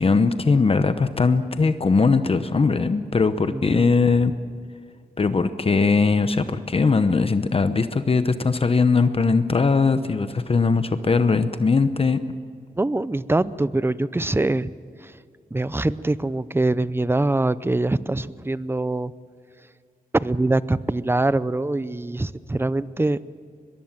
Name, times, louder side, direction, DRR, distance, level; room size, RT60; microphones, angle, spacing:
voice 1, 0.0-4.3 5.2-12.2, left 4 dB, 40° left, 10 dB, 0.9 m, -20 dB
voice 2, 3.5-3.9 12.8-14.7 15.0-15.1 15.5-19.1 20.1-23.3, right 2 dB, 15° right, 16 dB, 0.6 m, -23 dB
23.0 x 22.0 x 7.5 m, 2.2 s
wide cardioid pair, 105°, 15 cm